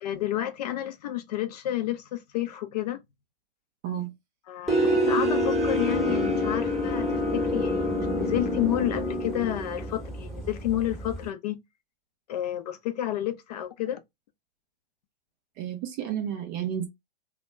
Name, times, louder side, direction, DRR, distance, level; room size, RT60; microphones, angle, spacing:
voice 1, 0.0-3.0 4.5-11.6 12.3-14.0, left 13 dB, 45° left, 0.5 m, -31 dB
sound 1, 4.7-11.3, equal, ahead, 0.9 m, -27 dB
voice 2, 15.6-16.9, right 9 dB, 20° right, 0.3 m, -31 dB
2.2 x 2.1 x 3.1 m
hypercardioid pair, 120°, 29 cm